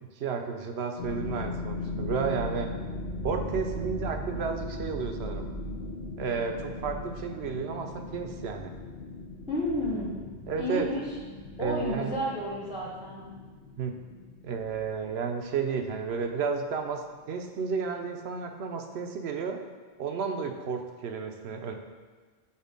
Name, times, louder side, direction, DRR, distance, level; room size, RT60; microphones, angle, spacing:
voice 1, 0.2-2.7 3.2-5.5 6.2-8.7 10.5-10.9 11.6-12.1 13.8-14.0 14.4-19.6 20.0-21.7, right 5 dB, 70° right, 5 dB, 0.9 m, -32 dB
sound 1, 1.0-16.9, left 2 dB, 90° left, 1.2 m, -38 dB
voice 2, 9.5-10.1 10.6-11.0 11.6-13.2, left 1 dB, 5° right, -6 dB, 0.7 m, -31 dB
6.7 x 2.9 x 5.1 m, 1.4 s
omnidirectional pair, 1.1 m